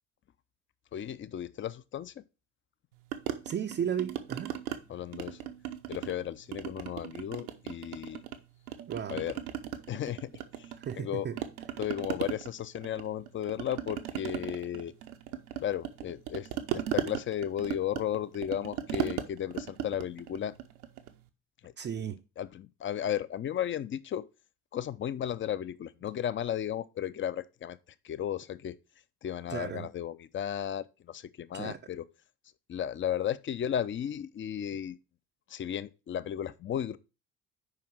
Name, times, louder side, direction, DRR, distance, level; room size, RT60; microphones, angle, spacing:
voice 1, 0.9-2.2 4.9-5.4 5.9-8.2 9.1-9.3 9.9-10.3 10.6-11.3 11.8-14.9 15.6-20.6 21.6-21.7 22.4-24.3 24.7-27.8 28.0-28.8 29.2-32.0 32.7-35.0 35.5-37.0, left 10 dB, 30° left, 0.5 m, -34 dB
sound 1, 3.1-4.8 5.1-6.2 6.5-8.4 8.7-11.1 11.4-21.2, right 11 dB, 75° right, 0.8 m, -37 dB
voice 2, 3.4-4.6 8.9-9.3 10.8-11.4 21.8-22.2 29.5-29.9 31.5-31.8, right 8 dB, 25° right, 0.5 m, -35 dB
5.1 x 4.9 x 6.0 m
figure-of-eight pair, 50°, 44 cm